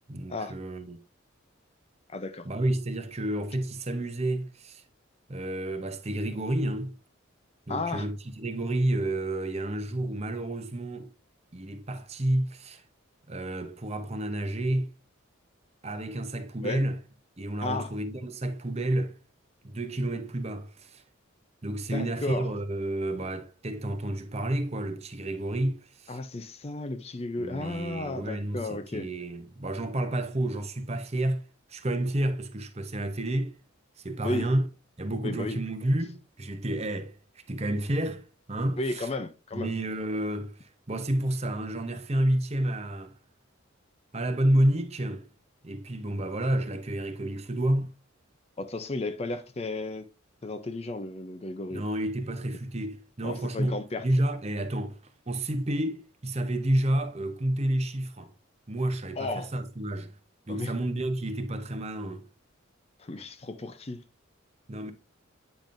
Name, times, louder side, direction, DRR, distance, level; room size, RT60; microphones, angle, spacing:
voice 1, 0.1-1.0 2.4-4.8 5.3-7.0 7.7-11.1 11.5-12.8 13.3-14.9 15.8-17.0 17.4-19.2 19.6-21.0 21.6-26.2 27.4-33.6 34.0-34.7 35.0-37.2 37.5-39.1 39.5-43.1 44.1-45.3 45.6-47.9 51.7-58.3 58.7-60.1 60.5-62.3 64.7-64.9, right 1 dB, 30° right, 0.7 m, -30 dB
voice 2, 2.1-2.5 7.7-8.1 16.6-16.8 17.6-17.9 21.9-22.5 26.1-29.1 34.2-34.5 35.2-35.6 38.8-39.7 48.6-50.1 50.4-51.9 53.2-54.1 59.2-59.5 60.5-60.7 63.0-64.0, left 2 dB, 30° left, 0.5 m, -33 dB
9.0 x 5.2 x 2.5 m
head